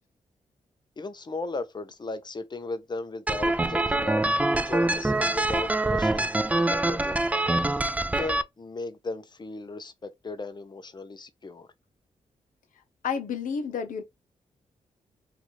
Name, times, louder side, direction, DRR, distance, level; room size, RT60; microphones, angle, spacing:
voice 1, 1.0-7.4 8.1-11.7, left 3 dB, 35° left, 0.7 m, -36 dB
sound 1, 3.3-8.4, right 2 dB, 10° right, 0.3 m, -25 dB
voice 2, 13.0-14.0, left 6 dB, 85° left, 0.8 m, -30 dB
3.0 x 2.5 x 2.7 m
cardioid pair, 70°, 13 cm